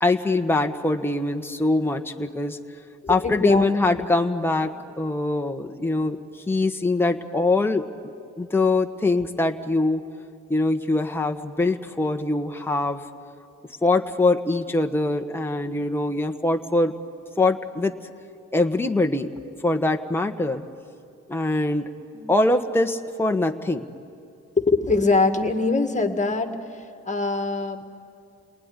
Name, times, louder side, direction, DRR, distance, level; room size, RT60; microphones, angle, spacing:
voice 1, 0.0-2.6 3.1-6.2 6.5-7.9 8.4-10.0 10.5-13.0 13.8-16.9 17.4-17.9 18.5-19.3 19.6-20.6 21.3-21.9 22.3-23.9, left 2 dB, 5° left, 4 dB, 1.3 m, -23 dB
voice 2, 3.0-4.1 22.1-22.4 24.6-27.8, left 3 dB, 25° left, 6 dB, 2.2 m, -23 dB
30.0 x 19.5 x 9.9 m, 2.5 s
cardioid pair, 90°, 30 cm